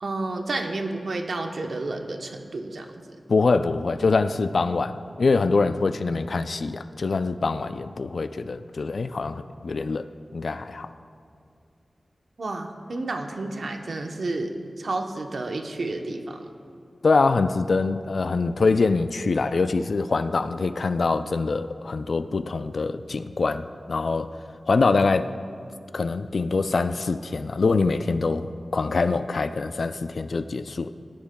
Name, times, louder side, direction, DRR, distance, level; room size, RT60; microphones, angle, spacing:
voice 1, 0.0-3.0 12.4-16.5, right 2 dB, 75° right, 4 dB, 0.8 m, -31 dB
voice 2, 3.3-10.1 10.3-10.9 17.0-24.3 24.7-25.3 25.9-30.9, left 4 dB, 70° left, 10 dB, 0.3 m, -24 dB
19.5 x 10.5 x 2.3 m, 2.4 s
wide cardioid pair, 75°, 0 cm